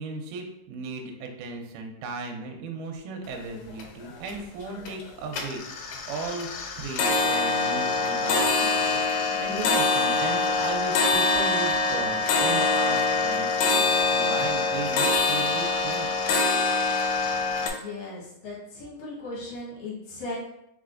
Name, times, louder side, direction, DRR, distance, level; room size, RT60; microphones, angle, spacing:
voice 1, 0.0-6.5 6.8-16.1, right 3 dB, 75° right, 2 dB, 2.0 m, -36 dB
sound 1, 3.3-3.4 3.7-4.3 4.7-5.0 5.3-17.7, left 3 dB, 80° left, 1.9 m, -24 dB
voice 2, 17.6-20.4, left 2 dB, 55° left, -6 dB, 1.5 m, -37 dB
4.5 x 4.1 x 2.5 m, 0.83 s
omnidirectional pair, 4.0 m